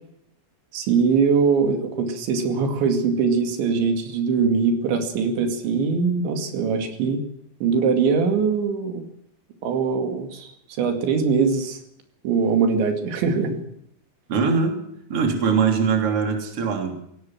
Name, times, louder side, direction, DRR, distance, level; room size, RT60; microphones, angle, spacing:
voice 1, 0.7-7.2 7.6-9.0 9.6-10.5 10.8-11.8 12.2-13.6, right 5 dB, 80° right, 5 dB, 4.6 m, -22 dB
voice 2, 14.3-14.8 15.1-16.9, right 5 dB, 35° right, 3 dB, 3.6 m, -21 dB
20.0 x 18.0 x 7.5 m, 0.73 s
omnidirectional pair, 5.2 m